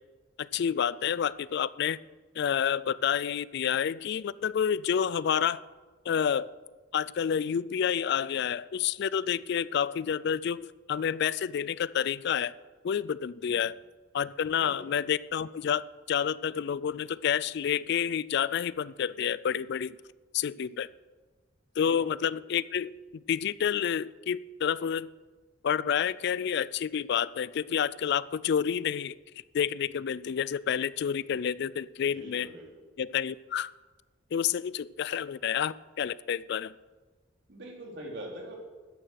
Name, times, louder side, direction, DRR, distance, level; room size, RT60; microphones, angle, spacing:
voice 1, 0.4-2.0 2.4-5.6 6.1-6.5 6.9-12.5 12.8-13.8 14.1-20.0 20.3-20.9 21.8-22.9 23.3-25.1 25.6-29.2 29.5-32.5 33.0-33.7 34.3-36.7, left 8 dB, 60° left, 19 dB, 0.3 m, -29 dB
voice 2, 14.5-14.9 21.8-22.1 32.0-32.8 37.5-38.5, right 1 dB, 60° right, -1 dB, 3.4 m, -44 dB
13.0 x 10.0 x 6.4 m, 1.3 s
head